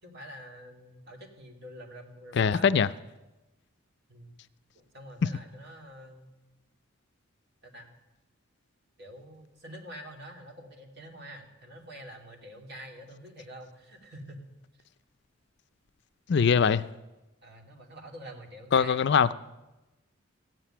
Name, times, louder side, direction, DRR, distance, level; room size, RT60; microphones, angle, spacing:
voice 1, 0.0-2.7 4.1-4.4 4.7-6.3 7.6-7.9 9.0-14.4 17.4-19.0, equal, 55° right, 2.6 m, -46 dB
voice 2, 2.3-2.9 16.3-16.8 18.7-19.3, left 6 dB, 55° left, 0.4 m, -22 dB
15.5 x 7.8 x 10.0 m
head